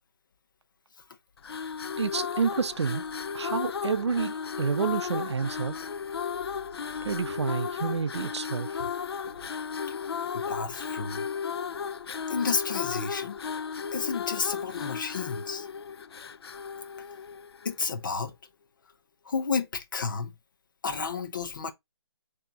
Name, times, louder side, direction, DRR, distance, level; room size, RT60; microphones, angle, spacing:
sound 1, 1.4-17.8, left 6 dB, 65° left, 0.4 m, -35 dB
voice 1, 2.0-3.0 3.3-5.8 7.0-8.9, right 5 dB, 80° right, 0.5 m, -29 dB
voice 2, 10.3-11.3 12.3-13.4 13.9-15.7 17.6-18.3 19.3-20.3 20.8-21.7, left 5 dB, 45° left, 0.8 m, -31 dB
4.5 x 2.8 x 3.9 m
hypercardioid pair, 165°, 14 cm